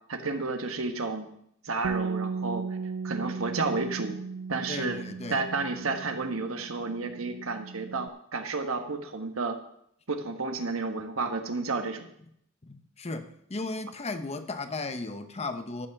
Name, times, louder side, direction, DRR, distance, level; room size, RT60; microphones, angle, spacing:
voice 1, 0.1-1.3 1.6-2.8 3.0-4.2 4.5-5.0 5.3-9.6 10.1-12.0, right 3 dB, 85° right, 1.4 m, -31 dB
Bass guitar, 1.8-8.1, right 5 dB, 65° right, 0.4 m, -36 dB
voice 2, 4.7-5.4 12.6-15.9, left 3 dB, 30° left, 0.9 m, -35 dB
13.0 x 5.6 x 7.2 m
head